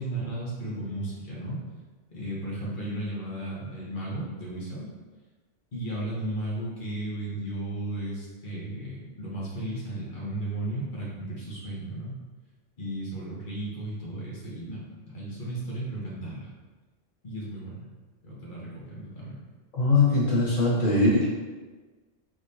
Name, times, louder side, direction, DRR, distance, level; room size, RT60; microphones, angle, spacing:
voice 1, 0.0-1.6 2.1-4.9 5.7-12.2 12.8-16.5 17.2-17.9 18.2-19.4, right 1 dB, 45° left, -6 dB, 1.1 m, -34 dB
voice 2, 19.7-21.2, left 2 dB, 90° left, -7 dB, 1.7 m, -21 dB
3.8 x 3.3 x 2.7 m, 1.3 s
omnidirectional pair, 1.3 m